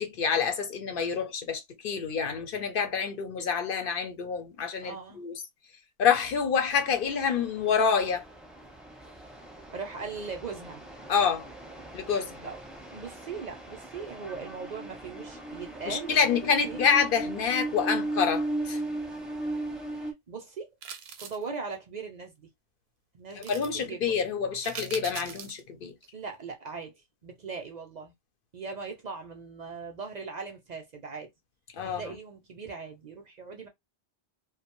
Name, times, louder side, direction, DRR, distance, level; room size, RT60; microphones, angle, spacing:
voice 1, 0.0-5.4 6.0-8.2 11.1-11.5 11.9-12.5 15.9-18.8 23.3-25.9 31.7-32.2, left 6 dB, 60° left, 0.8 m, -27 dB
voice 2, 4.8-5.3 9.7-10.8 12.4-12.6 12.9-16.4 16.6-16.8 20.0-20.7 21.2-22.5 23.1-24.0 26.1-26.9 27.2-28.1 28.5-31.3 31.8-33.7, right 5 dB, 50° right, 0.6 m, -39 dB
sound 1, 6.7-20.1, right 1 dB, ahead, 0.5 m, -37 dB
sound 2, 20.8-21.5 23.4-23.7 24.6-25.6 26.0-26.1, right 7 dB, 80° right, 0.9 m, -41 dB
2.5 x 2.2 x 2.9 m
omnidirectional pair, 1.1 m